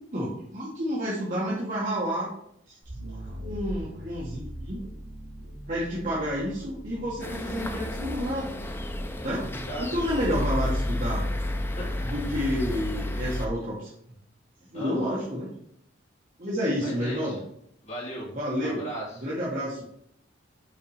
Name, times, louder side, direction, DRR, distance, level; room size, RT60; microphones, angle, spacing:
voice 1, 0.1-2.3 2.7-2.8 3.4-4.8 5.7-8.5 9.2-9.5 9.8-11.3 12.0-13.9 14.7-15.5 16.4-17.4 18.3-18.8 19.2-19.8, equal, 40° right, -7 dB, 1.6 m, -30 dB
sound 1, 2.9-11.0, equal, 75° right, 2.7 m, -41 dB
sound 2, 7.2-13.5, left 1 dB, 10° left, 0.5 m, -31 dB
voice 2, 9.1-10.0 11.8-11.9 14.7-15.2 16.8-17.4 17.8-18.3 18.6-19.2, right 1 dB, 35° left, -6 dB, 2.8 m, -37 dB
5.7 x 4.6 x 4.9 m, 0.69 s
head